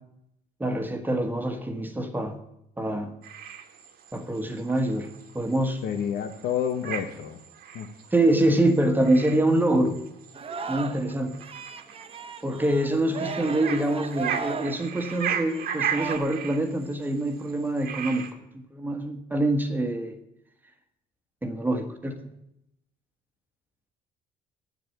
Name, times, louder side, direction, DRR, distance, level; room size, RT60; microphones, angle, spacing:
voice 1, 0.6-2.4 2.8-3.1 4.1-5.1 5.3-5.8 8.1-10.0 10.7-11.3 12.4-18.3 18.5-20.2 21.4-22.2, right 1 dB, 10° right, 5 dB, 1.4 m, -25 dB
sound 1, 3.2-18.3, right 8 dB, 65° right, 1.6 m, -37 dB
voice 2, 5.8-7.4 7.7-7.9, left 8 dB, 75° left, 7 dB, 1.0 m, -29 dB
Singing, 10.3-11.1 11.4-16.2, right 5 dB, 35° right, 1.1 m, -36 dB
9.4 x 7.7 x 9.1 m, 0.81 s
cardioid pair, 110°, 17 cm